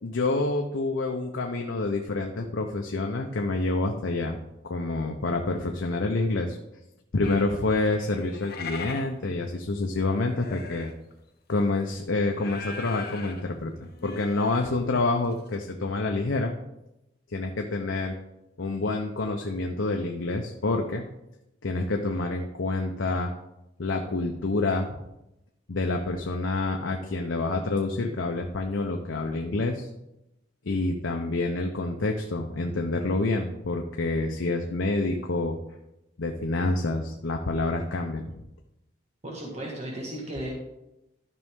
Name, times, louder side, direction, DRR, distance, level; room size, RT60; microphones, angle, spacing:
voice 1, 0.0-4.4 4.6-6.6 7.1-10.9 11.5-13.7 14.0-16.6 17.3-18.1 18.6-21.1 21.6-23.3 23.8-25.0 25.7-29.9 30.7-35.6 36.2-38.4, left 2 dB, 85° left, 2 dB, 0.7 m, -27 dB
sound 1, 7.2-11.1 11.5-11.8 12.3-13.4 13.8-14.7 15.0-15.1 15.3-15.6, left 4 dB, 55° left, 1.0 m, -41 dB
voice 2, 39.2-40.5, right 1 dB, 35° right, -2 dB, 1.6 m, -35 dB
12.5 x 5.4 x 3.7 m, 0.90 s
head